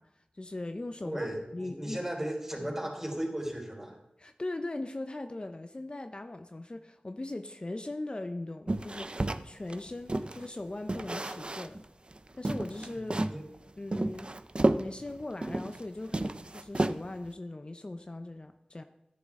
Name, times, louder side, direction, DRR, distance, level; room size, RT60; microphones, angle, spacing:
voice 1, 0.0-1.3 1.5-2.1 2.5-2.7 4.2-11.8 12.3-13.2 13.8-14.3 14.8-18.8, left 2 dB, 40° left, 8 dB, 0.6 m, -40 dB
voice 2, 1.0-4.0 12.9-13.4, right 1 dB, 15° right, -1 dB, 4.6 m, -36 dB
sound 1, 8.7-10.5 10.9-11.8 12.1-12.2 12.4-13.4 13.9-15.8 16.1-17.3, right 2 dB, 40° right, 0.6 m, -31 dB
13.5 x 10.5 x 3.7 m, 0.86 s
wide cardioid pair, 45°, 3 cm